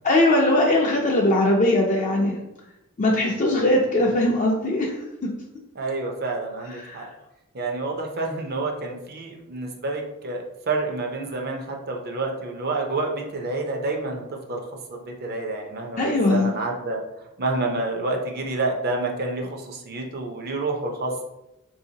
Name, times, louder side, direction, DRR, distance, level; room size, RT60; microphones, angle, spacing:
voice 1, 0.0-2.4 3.0-5.0 5.2-5.3 6.8-7.1 16.0-16.5, left 1 dB, 35° left, -1 dB, 0.4 m, -20 dB
voice 2, 5.7-7.1 7.5-17.0 17.4-21.2, right 2 dB, 50° right, 2 dB, 0.6 m, -29 dB
3.5 x 2.7 x 2.7 m, 0.91 s
head